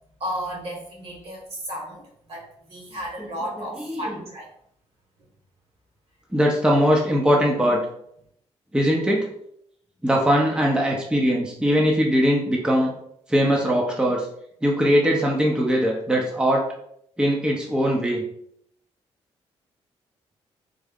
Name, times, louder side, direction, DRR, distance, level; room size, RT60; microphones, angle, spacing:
voice 1, 0.2-2.0 2.3-4.5, equal, 55° right, -1 dB, 1.5 m, -33 dB
voice 2, 3.2-4.3 6.3-7.8 8.7-9.3 10.0-12.9 13.3-14.3 14.6-16.6 17.2-18.2, equal, 10° right, -1 dB, 0.6 m, -21 dB
3.6 x 2.0 x 3.5 m, 0.71 s
cardioid pair, 85°, 12 cm